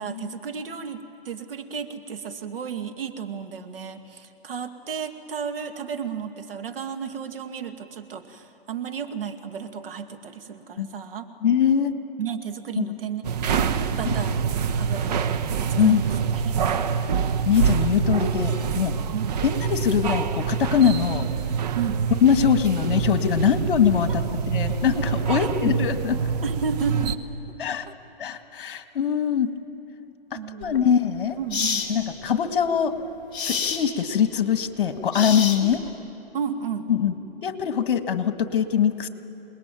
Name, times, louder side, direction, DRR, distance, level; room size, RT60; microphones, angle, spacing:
voice 1, 0.0-11.3 12.2-15.4 15.8-16.8 19.1-19.3 21.7-22.1 23.4-23.7 25.4-25.8 26.4-27.2 27.9-28.0 30.3-31.0 31.4-32.0 35.6-35.8 36.3-36.9, right 7 dB, 65° right, 7 dB, 2.1 m, -33 dB
voice 2, 11.4-11.9 12.8-12.9 15.8-16.0 17.5-18.9 19.4-21.3 22.2-26.2 27.6-27.9 28.2-29.5 30.5-31.4 31.9-32.9 33.4-35.8 36.9-37.1 37.4-39.1, left 8 dB, 55° left, 8 dB, 2.0 m, -22 dB
sound 1, 13.2-27.2, right 6 dB, 40° right, 1.1 m, -26 dB
sound 2, 30.6-30.8 31.5-31.9 33.3-33.8 35.1-35.9, left 6 dB, 15° left, 2.9 m, -27 dB
28.5 x 20.0 x 9.1 m, 2.9 s
hypercardioid pair, 155°, 31 cm